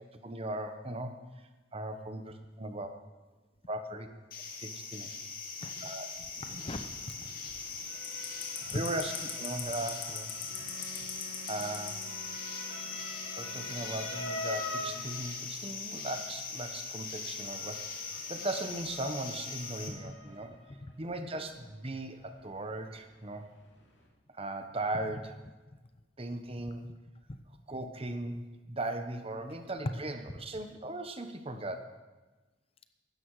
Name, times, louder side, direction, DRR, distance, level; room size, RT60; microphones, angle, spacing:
voice 1, 0.2-1.1 1.7-2.9 3.7-4.1 4.6-5.1 5.8-6.1 8.7-10.3 11.5-12.0 13.4-20.5 21.0-23.5 24.3-25.4 26.2-26.9 27.7-32.0, right 2 dB, 30° right, 7 dB, 1.2 m, -38 dB
sound 1, 4.3-19.9, left 5 dB, 55° left, 2.3 m, -40 dB
voice 2, 5.6-5.9 6.3-7.3 8.6-8.9 10.5-10.7 11.0-11.1 19.9-20.0 20.5-20.9 26.8-26.9, left 1 dB, 30° left, 8 dB, 0.7 m, -41 dB
Motor vehicle (road) / Siren, 6.7-24.1, left 2 dB, 80° left, 2.7 m, -47 dB
Wind instrument woodwind instrument, 10.5-14.6, right 2 dB, 70° right, 1.8 m, -52 dB
16.0 x 12.5 x 4.9 m, 1.2 s
head